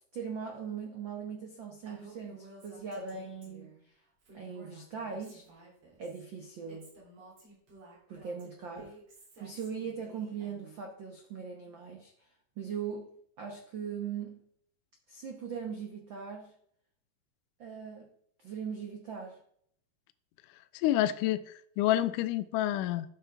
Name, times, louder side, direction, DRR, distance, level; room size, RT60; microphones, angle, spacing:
voice 1, 0.1-3.7 4.3-5.6 6.0-6.9 8.1-8.9 9.4-12.1 12.6-13.1 13.4-14.4 15.1-16.5 17.6-18.1 18.4-19.4, right 6 dB, 75° right, 2 dB, 1.1 m, -40 dB
Female speech woman speaking, 1.9-3.8 4.2-6.2 6.7-10.8, right 2 dB, 50° right, 4.3 m, -54 dB
voice 2, 20.7-23.1, left 13 dB, 80° left, 12 dB, 2.0 m, -28 dB
12.0 x 7.4 x 3.4 m, 0.67 s
omnidirectional pair, 3.8 m